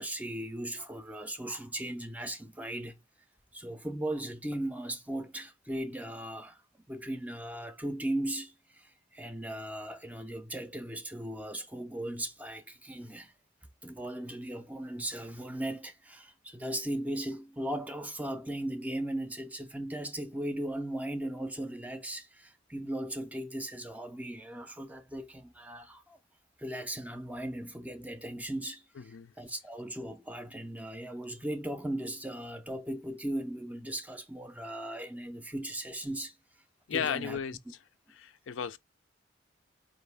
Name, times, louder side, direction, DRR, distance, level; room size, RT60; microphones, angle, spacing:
voice 1, 0.0-3.0 3.5-6.6 6.9-13.3 13.8-26.2 26.6-36.3 36.9-37.4 37.7-37.8, right 1 dB, 10° right, 0.4 m, -37 dB
voice 2, 29.0-29.3 36.9-37.6 38.2-38.8, left 7 dB, 80° left, 0.4 m, -34 dB
4.9 x 2.6 x 3.3 m
head